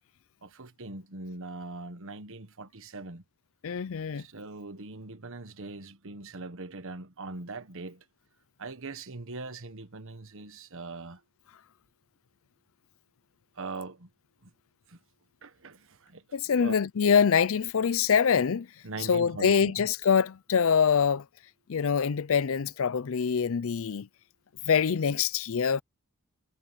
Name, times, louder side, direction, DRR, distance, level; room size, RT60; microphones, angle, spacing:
voice 1, 0.4-3.2 4.1-8.0 8.6-11.2 13.5-14.1 14.4-14.5 14.9-15.0 15.4-16.2 16.5-16.7 18.8-19.9, right 3 dB, 60° right, 1.3 m, -41 dB
voice 2, 3.6-4.2 16.3-18.7 19.1-21.2 21.7-24.1 24.7-25.8, left 6 dB, 65° left, 0.5 m, -24 dB
head